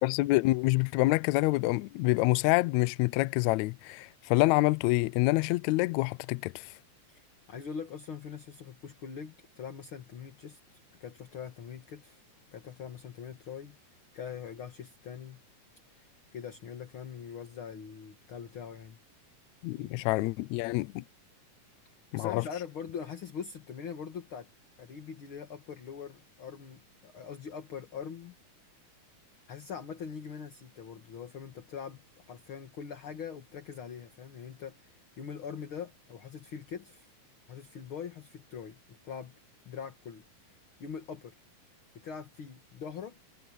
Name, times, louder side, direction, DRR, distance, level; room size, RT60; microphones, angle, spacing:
voice 1, 0.0-6.7 19.6-21.0 22.1-22.4, left 21 dB, 90° left, 1.6 m, -27 dB
voice 2, 7.1-10.6 11.0-12.2 12.5-13.8 14.1-15.4 15.9-19.0 19.7-20.1 22.1-24.5 24.8-28.4 29.5-37.1 37.5-39.3 39.6-41.4 41.9-43.2, left 7 dB, 45° left, 2.3 m, -43 dB
omnidirectional pair, 3.8 m